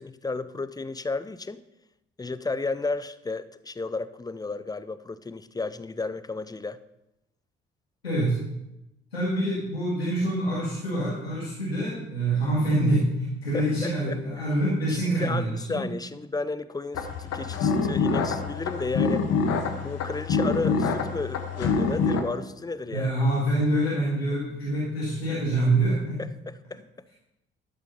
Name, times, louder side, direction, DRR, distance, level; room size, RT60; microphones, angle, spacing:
voice 1, 0.0-1.6 2.2-6.8 13.5-13.7 14.1-14.2 15.0-19.3 19.8-23.1 26.2-26.8, left 3 dB, 15° left, 15 dB, 0.6 m, -33 dB
voice 2, 8.0-8.4 9.1-15.9 22.9-26.2, right 1 dB, 90° left, -8 dB, 2.1 m, -26 dB
sound 1, 16.9-22.2, left 4 dB, 55° left, 1.4 m, -26 dB
12.0 x 6.8 x 5.4 m, 0.88 s
figure-of-eight pair, 45°, 30 cm